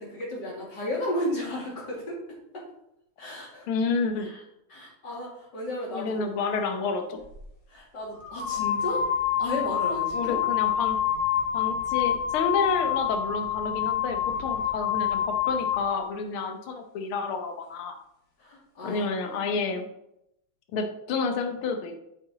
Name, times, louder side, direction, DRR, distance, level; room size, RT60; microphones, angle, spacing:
voice 1, 0.0-2.2 2.5-2.6 3.2-3.7 4.2-4.4 4.7-6.3 7.7-9.0 9.4-10.4 18.4-19.1 19.4-19.7, left 1 dB, 55° left, -3 dB, 2.8 m, -34 dB
voice 2, 3.7-4.3 5.9-7.2 10.1-11.0 11.5-17.9 18.8-19.9 20.7-22.0, left 4 dB, 80° left, 5 dB, 1.8 m, -30 dB
sound 1, 7.2-7.4 8.2-15.9, left 9 dB, 35° left, 3.4 m, -27 dB
7.6 x 6.0 x 3.9 m, 0.80 s
omnidirectional pair, 2.3 m